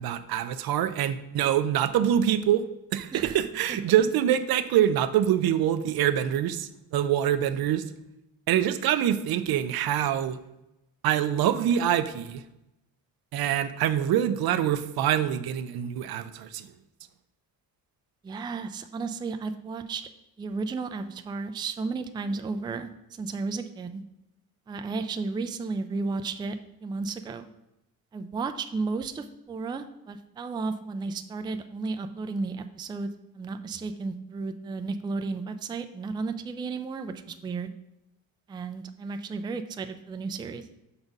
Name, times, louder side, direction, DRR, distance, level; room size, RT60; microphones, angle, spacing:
voice 1, 0.0-2.6 2.9-7.8 8.5-10.4 11.0-12.4 13.3-16.7, right 10 dB, 70° right, 12 dB, 0.6 m, -25 dB
voice 2, 18.2-20.0 20.4-24.0 24.7-26.5 26.8-27.5 28.1-33.1 33.3-37.7 38.5-40.7, right 4 dB, 15° right, 8 dB, 0.3 m, -33 dB
5.9 x 4.1 x 5.2 m, 0.90 s
cardioid pair, 120°, 37 cm